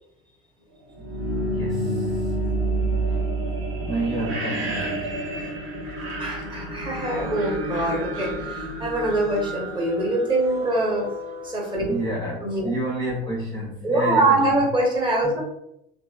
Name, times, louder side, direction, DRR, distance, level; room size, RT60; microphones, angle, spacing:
sound 1, 0.9-10.8, right 1 dB, 45° right, 0.9 m, -29 dB
voice 1, 1.5-2.3 3.1-3.2 3.8-5.2 11.8-14.4 15.2-15.3, right 1 dB, 10° left, -4 dB, 0.5 m, -30 dB
voice 2, 6.2-11.1 11.4-11.9 12.4-12.7 13.8-15.4, right 2 dB, 15° right, -2 dB, 0.9 m, -23 dB
sound 2, 6.9-12.1, equal, 75° right, 0.6 m, -40 dB
2.9 x 2.6 x 2.2 m, 0.83 s
figure-of-eight pair, 70°, 31 cm